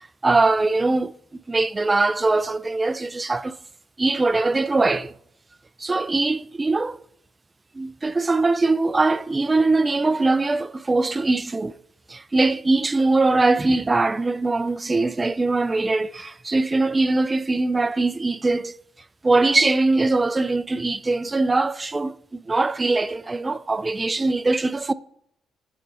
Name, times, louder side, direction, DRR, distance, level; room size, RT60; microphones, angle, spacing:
voice 1, 0.2-1.1 1.5-3.6 4.0-5.1 5.8-7.0 7.7-11.8 12.1-18.7 19.2-24.9, right 3 dB, 25° right, 0.3 m, -21 dB
9.0 x 3.3 x 5.3 m
cardioid pair, 90°, 0 cm